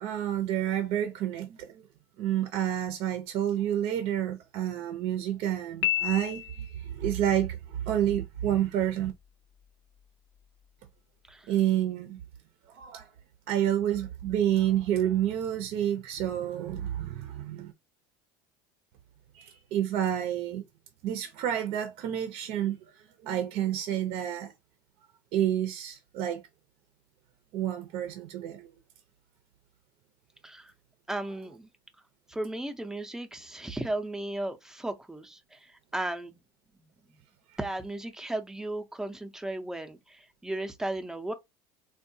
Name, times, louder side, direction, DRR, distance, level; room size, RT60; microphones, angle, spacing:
voice 1, 0.0-1.8 2.2-9.1 11.5-12.2 12.7-13.1 13.5-17.7 19.3-20.6 21.0-24.5 25.3-26.4 27.5-28.7, right 11 dB, 60° right, 0.6 m, -29 dB
Piano, 5.8-6.9, left 13 dB, 55° left, 0.5 m, -30 dB
voice 2, 31.1-31.7 32.3-36.3 37.6-41.3, right 1 dB, 5° right, 0.5 m, -35 dB
3.6 x 2.2 x 2.6 m
supercardioid pair, 125°, 11 cm